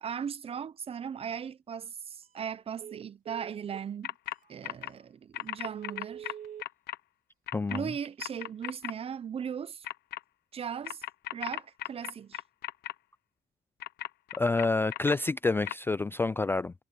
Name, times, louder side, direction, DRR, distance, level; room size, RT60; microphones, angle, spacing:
voice 1, 0.0-4.1 4.5-6.3 7.7-9.9 10.5-11.0 11.3-12.4, right 7 dB, 35° right, 0.7 m, -38 dB
Telephone, 2.2-2.5 2.8-3.9 4.4-4.5 4.9-5.1 5.5-6.6 7.8-8.5, right 9 dB, 50° right, 2.3 m, -45 dB
sound 1, 4.0-4.4 4.6-4.9 5.3-7.0 7.5-7.8 8.2-8.9 9.8-10.2 10.8-12.9 13.8-15.1 15.7-15.8, left 14 dB, 70° left, 1.0 m, -36 dB
voice 2, 7.5-7.9 14.4-16.7, left 3 dB, 15° left, 0.3 m, -28 dB
cardioid pair, 110°, 17 cm